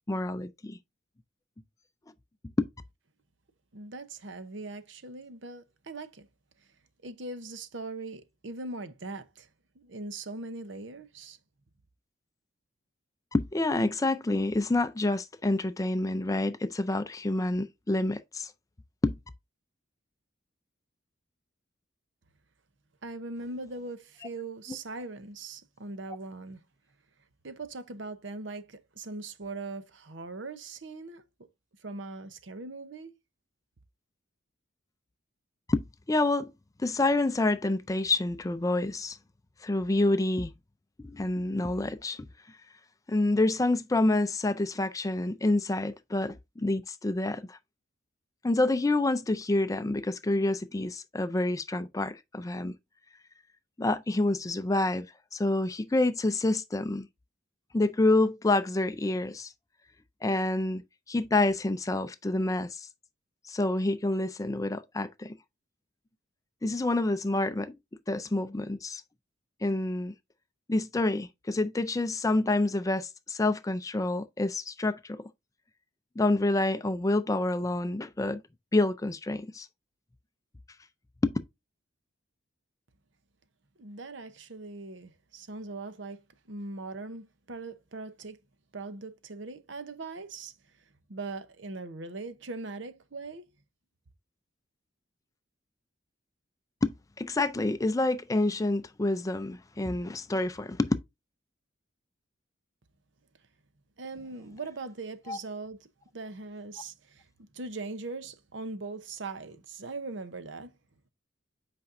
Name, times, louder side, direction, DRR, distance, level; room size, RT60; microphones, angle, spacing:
voice 1, 0.1-0.8 2.6-2.7 13.3-18.5 19.0-19.2 35.7-36.5 36.8-39.2 39.6-40.5 41.0-42.3 43.1-47.6 48.4-52.7 53.8-55.1 55.3-57.1 57.7-59.5 60.2-60.8 61.1-62.9 63.5-65.4 66.6-67.8 68.1-69.0 69.6-70.1 70.7-75.2 76.2-78.4 78.7-79.7 81.2-81.4 96.8-100.9 105.3-105.4, left 2 dB, 15° left, 0.4 m, -28 dB
voice 2, 3.7-6.3 7.0-9.5 9.7-11.4 23.0-26.6 27.4-31.2 31.8-33.1 83.8-86.2 86.5-88.4 88.7-90.5 91.1-93.5 104.0-105.9 106.1-107.3 107.5-110.7, right 3 dB, 65° right, 0.8 m, -40 dB
8.3 x 5.2 x 2.6 m
head